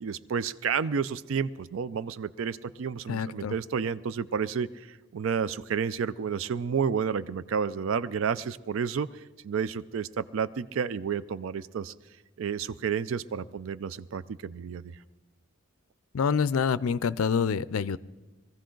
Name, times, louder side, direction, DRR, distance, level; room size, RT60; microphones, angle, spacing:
voice 1, 0.0-9.1 9.4-11.9 12.4-15.0, right 6 dB, 65° right, 17 dB, 0.4 m, -31 dB
voice 2, 3.1-3.5 16.1-18.0, left 6 dB, 80° left, 18 dB, 0.4 m, -26 dB
21.5 x 15.0 x 3.8 m, 1.2 s
head